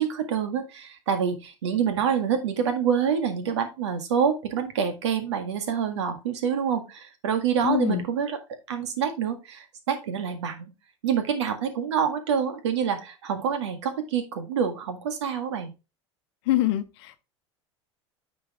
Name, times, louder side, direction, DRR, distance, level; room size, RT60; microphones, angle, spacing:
voice 1, 0.0-8.4 8.7-10.7 11.0-15.7, right 7 dB, 70° right, 1.8 m, -27 dB
voice 2, 7.6-8.0 16.5-17.2, left 14 dB, 60° left, 0.9 m, -25 dB
9.4 x 5.3 x 3.4 m
figure-of-eight pair, 80°, 16 cm